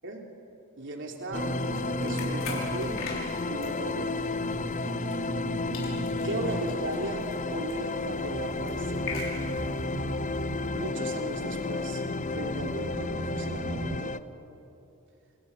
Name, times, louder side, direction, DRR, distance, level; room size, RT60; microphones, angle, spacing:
voice 1, 0.8-1.6 2.0-3.1 3.5-4.4 6.2-9.1 10.7-12.0 12.3-14.2, right 2 dB, 55° right, 1 dB, 3.3 m, -37 dB
sound 1, 1.3-5.5 5.7-9.8, left 4 dB, 60° left, 6.1 m, -43 dB
sound 2, 1.3-14.2, left 3 dB, 35° left, 0.6 m, -33 dB
sound 3, 1.3-14.0, right 2 dB, 30° right, 0.7 m, -37 dB
29.0 x 28.5 x 7.2 m, 2.9 s
head